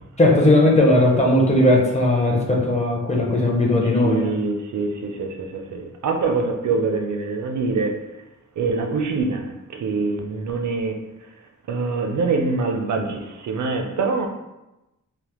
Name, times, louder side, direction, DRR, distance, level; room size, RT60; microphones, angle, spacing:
voice 1, 0.2-4.3, left 1 dB, 20° left, -1 dB, 0.5 m, -17 dB
voice 2, 3.8-8.0 8.6-10.9 11.7-14.3, right 4 dB, 60° right, 3 dB, 0.5 m, -24 dB
3.3 x 2.0 x 2.9 m, 0.97 s
wide cardioid pair, 135°, 33 cm